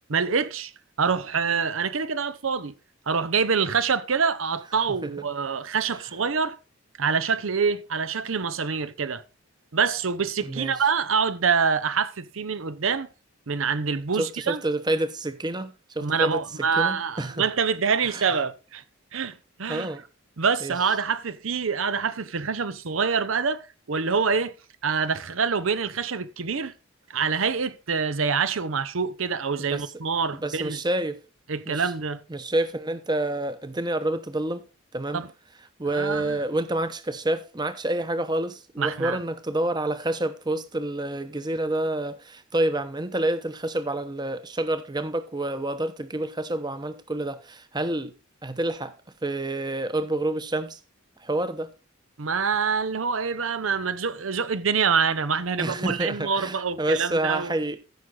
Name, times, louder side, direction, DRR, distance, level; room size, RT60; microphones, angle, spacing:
voice 1, 0.1-0.7 1.0-2.7 3.1-6.6 7.0-9.2 9.7-13.1 13.5-14.6 16.0-18.8 19.1-19.9 20.4-24.5 24.8-26.7 27.1-30.8 31.5-32.2 35.1-35.3 35.9-36.4 38.8-39.2 52.2-57.5, right 5 dB, 70° right, 0.7 m, -26 dB
voice 2, 10.4-10.8 14.2-16.4 16.8-17.5 18.0-18.3 19.7-20.0 20.6-20.7 29.6-29.9 30.4-31.2 31.7-31.9 32.3-34.6 34.9-35.2 35.8-48.1 48.4-48.9 49.2-50.8 51.2-51.7 55.6-57.8, right 1 dB, 20° right, 0.9 m, -28 dB
14.5 x 6.2 x 3.9 m
head